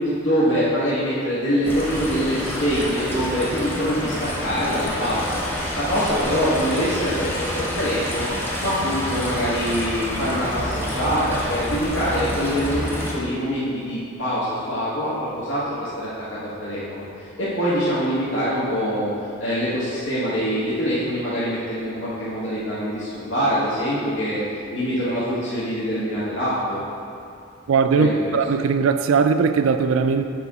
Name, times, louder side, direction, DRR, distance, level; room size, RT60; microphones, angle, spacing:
voice 1, 0.0-5.4 5.7-8.3 8.6-24.4 24.7-26.8 28.0-28.3, equal, 90° left, -11 dB, 1.5 m, -24 dB
sound 1, 1.6-13.1, equal, 10° left, 0.8 m, -28 dB
voice 2, 27.7-30.2, right 5 dB, 85° right, 9 dB, 0.4 m, -19 dB
6.9 x 4.4 x 4.8 m, 2.5 s
head